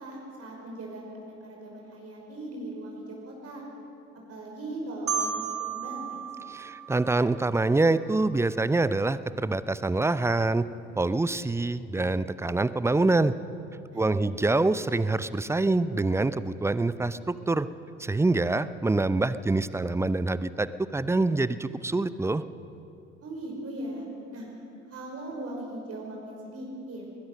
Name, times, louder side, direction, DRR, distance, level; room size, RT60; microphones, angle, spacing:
voice 1, 0.0-3.6 4.3-6.2 13.9-14.3 23.2-24.1 24.3-24.5 24.9-27.1, right 1 dB, 35° right, -1 dB, 5.5 m, -39 dB
Marimba xylophone, 5.1-7.9, right 7 dB, 85° right, 2.3 m, -34 dB
voice 2, 6.5-10.6 11.0-13.3 14.0-17.7 18.0-22.4, right 2 dB, 5° right, 15 dB, 0.6 m, -25 dB
21.0 x 20.0 x 6.6 m, 2.8 s
figure-of-eight pair, 65°, 41 cm